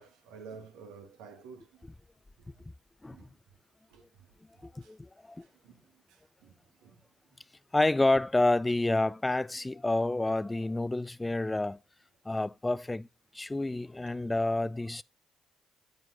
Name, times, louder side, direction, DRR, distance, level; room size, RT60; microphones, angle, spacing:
voice 1, 0.0-1.9 3.1-3.3 3.9-4.0 4.8-4.9 5.4-5.8 6.1-7.0, right 5 dB, 70° right, 1.6 m, -51 dB
voice 2, 4.6-5.5 7.7-11.8 12.3-13.1 13.3-15.0, left 2 dB, 15° left, 0.4 m, -29 dB
9.3 x 8.9 x 2.6 m
figure-of-eight pair, 45°, 0 cm